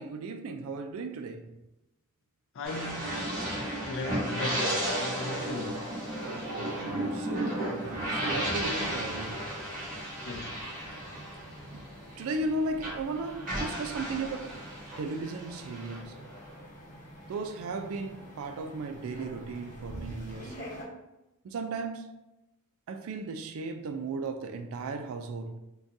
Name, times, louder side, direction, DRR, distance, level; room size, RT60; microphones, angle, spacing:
voice 1, 0.0-1.5 6.2-9.4 11.7-11.9 12.2-14.5 15.0-16.2 17.3-20.6 21.4-22.1 22.9-25.6, right 3 dB, 65° right, 0.3 m, -36 dB
voice 2, 2.5-6.0 10.2-10.6 10.9-11.0, left 2 dB, 60° left, 0.4 m, -38 dB
sound 1, 2.6-12.5 12.8-16.6, right 1 dB, 35° right, 1.1 m, -34 dB
sound 2, 5.3-20.8, equal, 35° left, 1.0 m, -48 dB
3.8 x 2.3 x 2.6 m
head